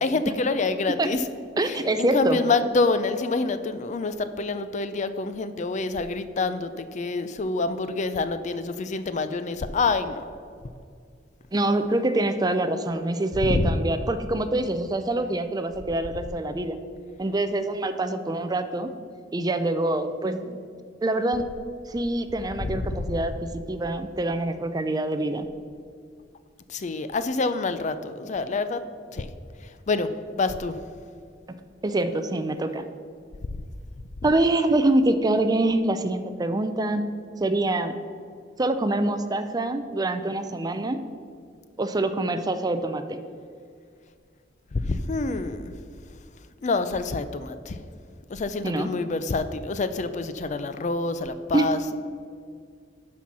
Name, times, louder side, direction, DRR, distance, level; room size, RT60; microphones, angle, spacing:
voice 1, 0.0-1.2 1.6-10.2 13.4-13.7 22.9-23.0 26.7-28.8 29.1-29.3 29.9-30.8 44.7-45.7 46.6-47.8 48.3-52.0, left 3 dB, 40° left, 11 dB, 0.4 m, -27 dB
voice 2, 1.6-2.4 11.5-16.8 17.2-18.9 19.3-20.6 21.0-21.5 21.9-25.5 31.5-32.8 34.2-37.1 37.4-37.9 38.6-41.0 41.8-43.2 48.6-48.9 51.5-51.7, right 2 dB, 20° right, 10 dB, 0.4 m, -25 dB
11.5 x 4.4 x 6.1 m, 2.2 s
head